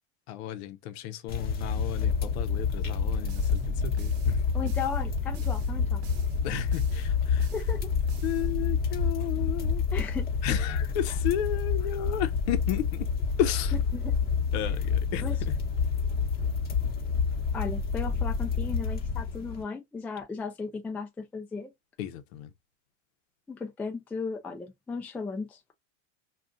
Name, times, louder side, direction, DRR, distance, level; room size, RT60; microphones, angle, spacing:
voice 1, 0.3-4.4 6.4-7.5 8.2-9.8 10.4-13.1 13.4-13.7 14.5-15.6 22.0-22.5, left 11 dB, 60° left, 0.7 m, -33 dB
sound 1, 1.3-19.6, left 5 dB, 25° left, 1.0 m, -28 dB
sound 2, 2.9-9.1, right 2 dB, 65° right, 0.8 m, -42 dB
voice 2, 4.5-6.0 7.5-7.9 9.9-10.3 13.9-14.2 15.2-15.4 17.5-21.7 23.5-25.6, left 5 dB, 5° left, 0.3 m, -36 dB
2.4 x 2.4 x 3.7 m
supercardioid pair, 135°, 36 cm